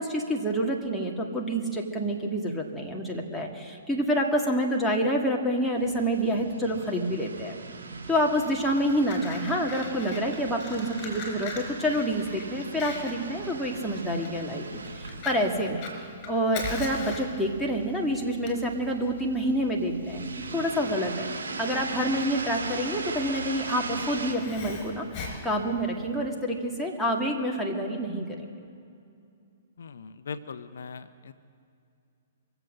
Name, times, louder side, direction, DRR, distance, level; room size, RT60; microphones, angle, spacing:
voice 1, 0.0-7.6 8.1-14.7 14.9-15.9 16.3-20.3 20.5-21.3 21.6-28.4, equal, 5° left, -2 dB, 1.8 m, -28 dB
sound 1, 5.8-24.3, right 4 dB, 75° right, 2.5 m, -39 dB
Fire, 8.6-26.3, left 3 dB, 35° left, 4.4 m, -41 dB
voice 2, 29.8-31.3, left 5 dB, 75° left, 13 dB, 0.5 m, -40 dB
24.0 x 8.0 x 6.4 m, 2.5 s
hypercardioid pair, 125°, 0 cm